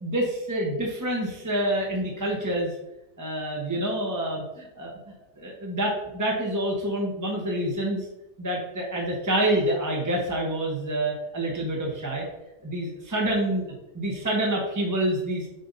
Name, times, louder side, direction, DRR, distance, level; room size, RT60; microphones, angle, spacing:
voice 1, 0.0-2.7 3.2-4.9 5.4-8.1 8.4-12.3 12.6-13.6 14.0-15.5, right 1 dB, 15° right, -2 dB, 0.7 m, -27 dB
7.6 x 2.7 x 5.2 m, 0.92 s
omnidirectional pair, 1.7 m